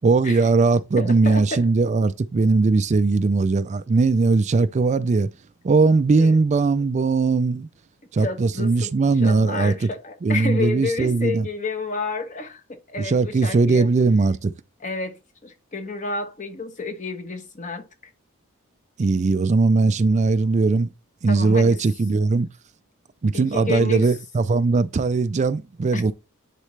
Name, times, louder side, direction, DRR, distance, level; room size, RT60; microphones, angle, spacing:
voice 1, 0.0-5.3 5.6-7.7 8.1-9.9 10.2-11.5 13.0-14.5 19.0-20.9 21.2-22.5 23.2-26.1, right 3 dB, 35° right, 0.4 m, -19 dB
voice 2, 1.0-1.7 6.2-6.3 8.2-8.9 9.2-13.9 14.8-17.8 21.3-21.8 23.3-24.1 25.9-26.1, left 3 dB, 35° left, 1.2 m, -30 dB
9.9 x 4.1 x 3.2 m
head